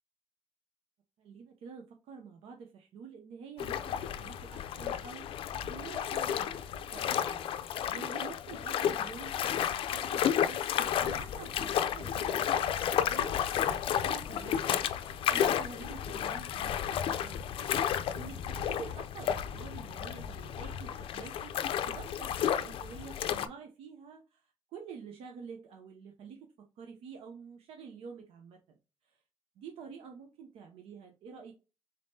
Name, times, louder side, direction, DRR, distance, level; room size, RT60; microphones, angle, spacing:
voice 1, 1.2-14.9 15.3-28.6 29.0-29.2 29.6-31.5, right 6 dB, 85° right, 0.6 m, -48 dB
sound 1, 3.6-23.5, left 9 dB, 70° left, 0.4 m, -32 dB
4.0 x 3.5 x 2.7 m
cardioid pair, 125°, 10 cm